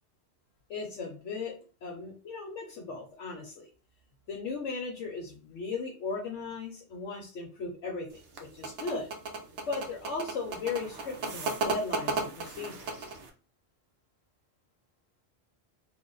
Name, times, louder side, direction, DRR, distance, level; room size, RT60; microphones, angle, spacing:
voice 1, 0.7-1.5 1.8-3.7 4.3-8.1 8.4-9.1 9.7-13.1, left 4 dB, 90° left, -3 dB, 1.2 m, -37 dB
sound 1, 8.1-13.3, right 3 dB, 75° right, 1.0 m, -34 dB
3.4 x 2.2 x 3.8 m, 0.37 s
omnidirectional pair, 1.2 m